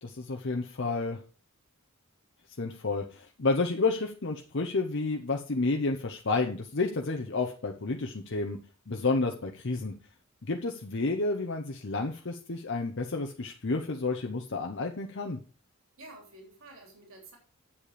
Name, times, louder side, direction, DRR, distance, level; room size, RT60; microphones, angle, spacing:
voice 1, 0.0-1.2 2.6-8.6 8.9-9.9 10.4-15.4, left 3 dB, 55° left, 3 dB, 0.8 m, -30 dB
voice 2, 16.0-17.4, right 2 dB, 65° right, 1 dB, 3.3 m, -50 dB
8.6 x 7.6 x 5.0 m, 0.37 s
head